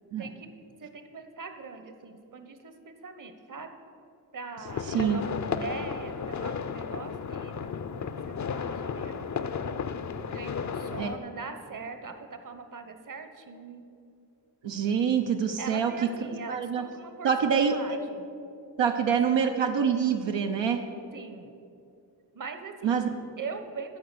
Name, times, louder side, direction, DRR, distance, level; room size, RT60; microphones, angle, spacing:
voice 1, 0.2-0.5 0.8-3.7 4.3-7.5 8.3-9.4 10.2-13.8 15.6-18.3 18.8-19.4 21.1-21.5 22.3-24.0, right 4 dB, 45° right, 7 dB, 1.0 m, -41 dB
sound 1, 4.7-11.2, left 6 dB, 40° left, 0.5 m, -33 dB
voice 2, 4.9-5.2 11.0-11.1 14.6-15.9 16.3-16.8 17.2-18.0 18.8-20.8 22.8-23.1, right 7 dB, 85° right, 4 dB, 0.7 m, -26 dB
13.5 x 4.7 x 6.8 m, 2.5 s
cardioid pair, 60°, 43 cm